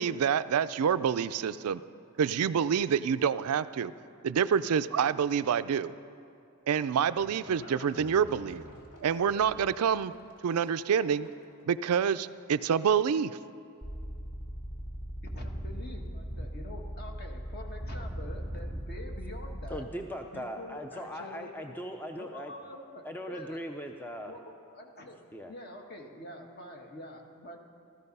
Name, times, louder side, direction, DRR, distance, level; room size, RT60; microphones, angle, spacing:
voice 1, 0.0-1.8 2.2-3.9 4.2-5.9 6.7-8.6 9.0-10.1 10.4-11.3 11.6-13.4, right 7 dB, 80° right, 13 dB, 0.4 m, -27 dB
Livestock farm animals working animals, 6.5-11.6, equal, 70° left, 2.2 m, -51 dB
sound 1, 13.8-19.8, equal, 25° left, 1.2 m, -38 dB
voice 2, 15.2-19.8 20.3-21.5 22.1-23.6 24.2-25.2 25.5-27.6, left 1 dB, 45° left, 2 dB, 1.5 m, -46 dB
voice 3, 19.7-22.5 23.0-24.3 25.3-25.5, equal, 10° left, 4 dB, 0.5 m, -39 dB
16.0 x 13.5 x 5.4 m, 2.5 s
head